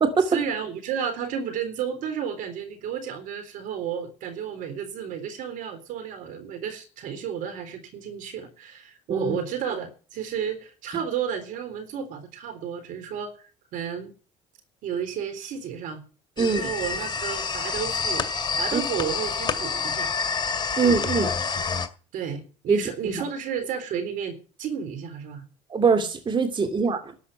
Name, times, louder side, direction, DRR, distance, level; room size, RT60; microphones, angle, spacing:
voice 1, 0.2-13.3 13.7-14.1 14.8-16.0 16.4-18.3 18.6-20.1 20.8-21.4 22.1-25.5, right 8 dB, 65° right, 9 dB, 3.9 m, -32 dB
sound 1, 16.4-21.9, left 5 dB, 30° left, 2.2 m, -28 dB
voice 2, 20.8-21.3 22.7-23.2 25.7-27.0, right 5 dB, 35° right, 6 dB, 2.6 m, -23 dB
12.5 x 8.3 x 8.8 m, 0.37 s
hypercardioid pair, 75°, 15 cm